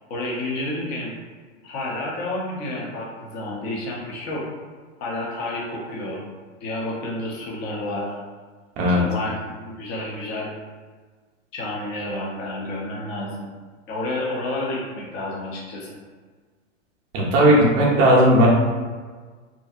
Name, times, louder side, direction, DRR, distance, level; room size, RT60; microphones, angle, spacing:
voice 1, 0.1-1.2 1.6-4.4 5.0-6.2 6.6-8.1 8.8-10.5 11.5-13.5 13.9-16.0, left 1 dB, 25° left, -3 dB, 0.5 m, -30 dB
voice 2, 17.1-18.5, equal, 30° right, -3 dB, 0.5 m, -16 dB
2.6 x 2.6 x 2.4 m, 1.4 s
supercardioid pair, 145°, 37 cm